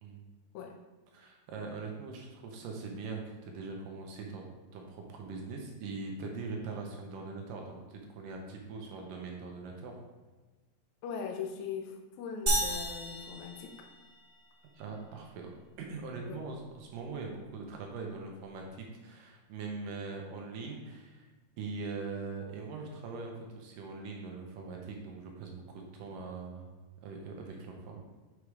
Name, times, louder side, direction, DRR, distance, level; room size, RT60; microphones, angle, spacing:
voice 1, 1.1-4.4 4.7-9.9 14.8-15.5 15.8-21.3 21.6-26.7 27.0-28.0, right 4 dB, 75° right, 1 dB, 2.4 m, -42 dB
voice 2, 11.0-13.9 16.2-16.4, left 6 dB, 70° left, 3 dB, 1.9 m, -40 dB
sound 1, 12.5-14.4, right 1 dB, 25° right, 2.4 m, -33 dB
7.3 x 4.9 x 4.7 m, 1.2 s
omnidirectional pair, 4.1 m